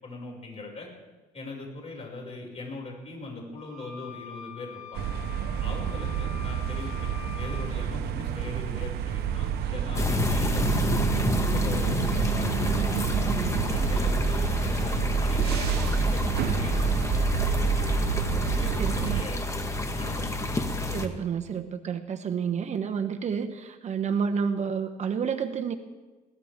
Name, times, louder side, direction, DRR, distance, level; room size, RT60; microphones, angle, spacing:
voice 1, 0.0-0.9 1.3-5.1 5.6-10.9 11.3-18.2 18.4-19.4 19.9-20.4 20.9-21.0, left 2 dB, 40° left, 0 dB, 6.2 m, -40 dB
sound 1, 3.5-7.7, left 9 dB, 85° left, 5.2 m, -44 dB
sound 2, 4.9-19.2, right 9 dB, 75° right, 1.0 m, -29 dB
sound 3, 9.9-21.1, left 2 dB, 15° left, 1.6 m, -29 dB
voice 2, 20.8-25.7, right 6 dB, 45° right, 6 dB, 1.1 m, -29 dB
22.0 x 17.5 x 3.7 m, 1.2 s
cardioid pair, 110°, 17 cm